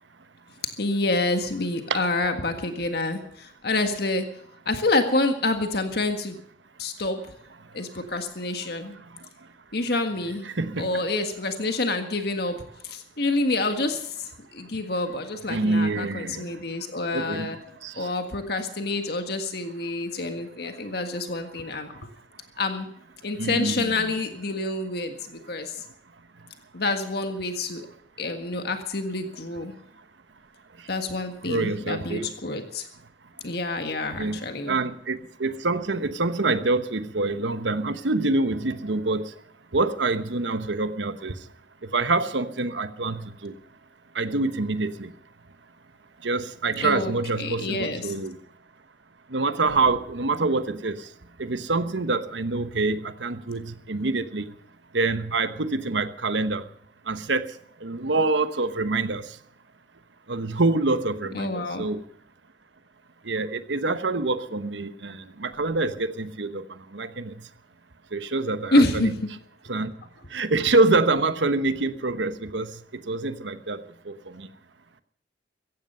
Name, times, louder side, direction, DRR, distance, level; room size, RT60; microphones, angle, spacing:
voice 1, 0.8-4.3 4.6-6.4 6.8-7.3 7.7-8.9 9.7-10.4 10.8-12.6 12.8-17.6 17.9-22.0 22.6-22.9 23.2-25.8 26.7-27.9 28.2-29.7 30.9-32.9 33.4-34.8 46.8-48.1 61.3-61.9 68.7-69.2, left 2 dB, 60° left, 6 dB, 1.7 m, -27 dB
voice 2, 10.4-11.0 15.5-16.4 17.1-17.5 17.8-18.1 23.4-23.9 31.4-32.3 34.2-34.4 34.7-39.3 39.7-41.4 41.9-43.5 44.1-45.1 46.2-48.4 49.3-51.1 51.4-54.5 54.9-56.6 57.1-57.5 57.8-59.3 60.3-62.0 63.2-67.3 68.1-69.1 69.7-69.9 70.3-72.8 73.1-73.8 74.0-74.5, right 3 dB, 80° right, 11 dB, 1.1 m, -26 dB
16.0 x 15.5 x 5.5 m, 0.68 s
head